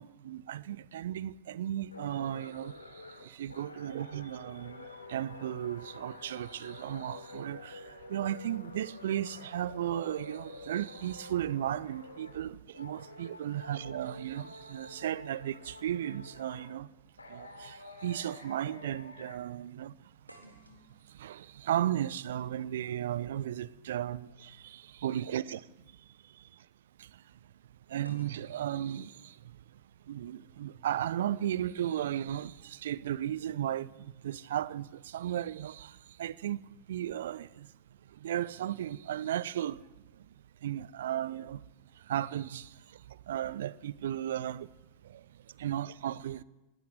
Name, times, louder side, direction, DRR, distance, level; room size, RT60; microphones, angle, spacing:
voice 1, 0.0-16.9 17.3-20.1 20.4-20.6 21.0-25.7 26.2-26.7 27.0-27.4 27.9-29.8 30.1-36.6 36.9-37.7 38.1-39.9 40.2-40.3 40.6-41.6 41.9-44.7 45.0-46.4, right 11 dB, 60° right, 0.9 m, -35 dB
sound 1, 1.9-12.5 12.7-16.8 17.2-19.4, left 2 dB, 80° left, 3.0 m, -49 dB
sound 2, 20.3-24.3 25.5-25.7 28.0-30.1, right 1 dB, 85° right, 3.7 m, -60 dB
25.5 x 19.0 x 9.5 m
figure-of-eight pair, 90°, 0 cm